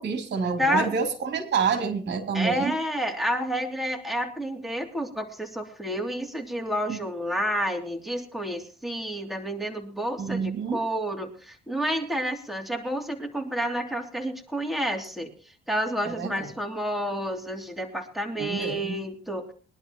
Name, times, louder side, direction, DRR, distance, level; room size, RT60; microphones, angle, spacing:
voice 1, 0.0-2.7 6.9-7.0 10.2-10.8 16.0-16.5 18.4-19.0, right 5 dB, 60° right, 4 dB, 3.2 m, -28 dB
voice 2, 0.6-1.0 2.3-15.3 15.7-19.5, equal, ahead, 2 dB, 3.0 m, -30 dB
22.5 x 11.5 x 3.0 m, 0.41 s
cardioid pair, 90°, 20 cm